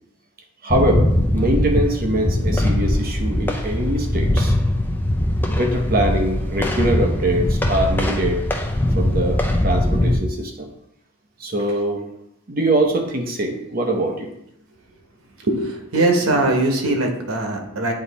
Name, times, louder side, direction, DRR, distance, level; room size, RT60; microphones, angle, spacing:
voice 1, 0.6-4.5 5.5-8.4 8.9-10.7 11.4-12.0 12.5-14.3, right 1 dB, 45° right, 2 dB, 0.8 m, -23 dB
sound 1, 0.7-10.2, left 1 dB, 10° left, 0.4 m, -21 dB
voice 2, 15.4-17.9, right 2 dB, 90° right, 2 dB, 1.1 m, -21 dB
8.6 x 2.9 x 4.1 m, 0.81 s
head